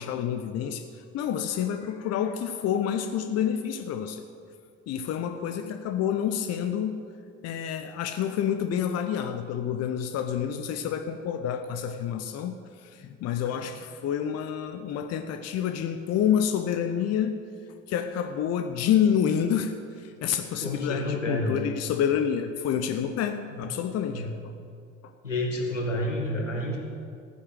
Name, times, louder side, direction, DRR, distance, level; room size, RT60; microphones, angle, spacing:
voice 1, 0.0-4.2 4.9-7.0 7.4-17.4 17.9-24.3 25.0-25.1, left 9 dB, 45° left, 8 dB, 0.8 m, -28 dB
voice 2, 20.6-21.6 23.5-23.6 24.1-24.3 25.2-26.8, left 1 dB, 85° left, 0 dB, 1.7 m, -29 dB
14.5 x 9.6 x 6.5 m, 2.3 s
figure-of-eight pair, 55°, 36 cm